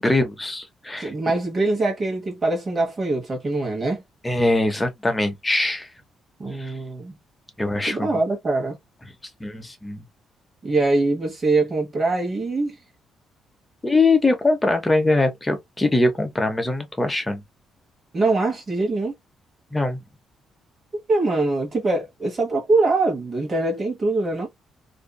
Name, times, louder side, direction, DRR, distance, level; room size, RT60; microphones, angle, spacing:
voice 1, 0.0-1.1 4.2-5.9 6.6-6.7 7.6-8.1 9.4-10.0 13.8-17.4 19.7-20.0, left 2 dB, 15° left, 0.8 m, -22 dB
voice 2, 1.0-4.0 6.4-7.1 7.9-8.8 10.6-12.8 18.1-19.1 21.1-24.5, right 2 dB, 35° right, 1.2 m, -23 dB
2.7 x 2.4 x 2.3 m
cardioid pair, 90°, 0 cm